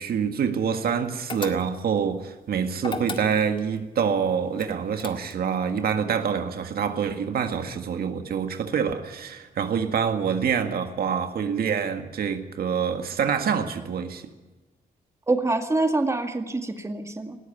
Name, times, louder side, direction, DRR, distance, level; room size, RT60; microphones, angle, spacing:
voice 1, 0.0-14.3, right 7 dB, 75° right, 1.8 m, -26 dB
sound 1, 1.3-2.0 2.8-3.7 4.6-5.6, left 4 dB, 30° left, 1.9 m, -35 dB
voice 2, 15.3-17.4, right 2 dB, 20° right, 2.0 m, -25 dB
19.5 x 13.5 x 10.0 m
cardioid pair, 105°, 16 cm